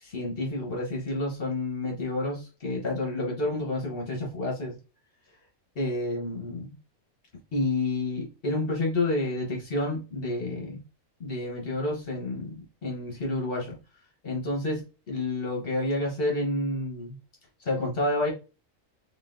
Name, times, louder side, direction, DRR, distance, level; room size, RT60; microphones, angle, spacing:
voice 1, 0.0-4.8 5.7-6.7 7.5-10.8 11.2-13.7 14.2-17.2 17.6-18.3, left 2 dB, 45° left, -1 dB, 1.2 m, -29 dB
3.8 x 3.6 x 2.5 m, 0.32 s
omnidirectional pair, 1.4 m